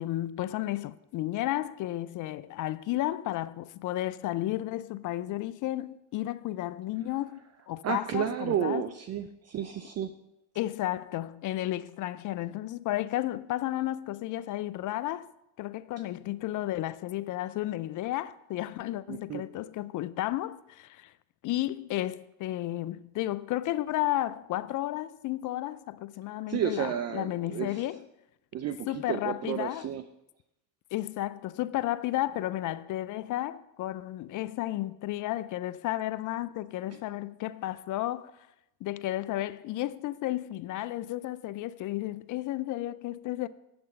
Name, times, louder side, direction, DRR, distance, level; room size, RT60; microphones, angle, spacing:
voice 1, 0.0-8.8 10.6-15.3 15.6-21.1 21.4-28.1 28.9-29.9 30.9-38.3 38.8-43.5, left 15 dB, 40° left, 0.5 m, -33 dB
voice 2, 7.8-10.1 19.1-19.4 26.5-27.9 28.5-30.0, right 9 dB, 35° right, 0.5 m, -32 dB
7.8 x 6.0 x 7.5 m
hypercardioid pair, 85°, 48 cm